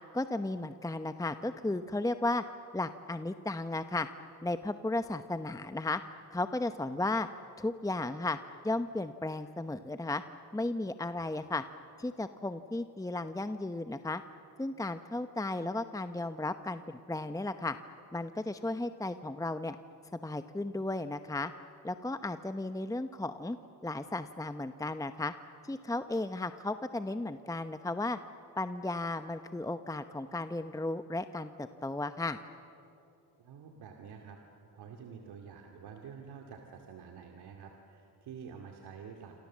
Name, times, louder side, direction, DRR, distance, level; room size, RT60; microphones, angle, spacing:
voice 1, 0.1-2.4 2.7-4.1 4.4-6.0 6.3-7.3 7.6-8.4 8.6-10.2 10.5-11.6 12.0-14.2 14.6-17.8 18.1-19.8 20.1-21.5 21.8-23.6 23.8-25.3 25.6-28.2 28.6-32.4, left 2 dB, 10° left, 10 dB, 0.9 m, -34 dB
voice 2, 33.4-39.3, right 6 dB, 75° right, 3 dB, 2.5 m, -48 dB
27.5 x 27.5 x 7.5 m, 2.7 s
supercardioid pair, 70°, 40 cm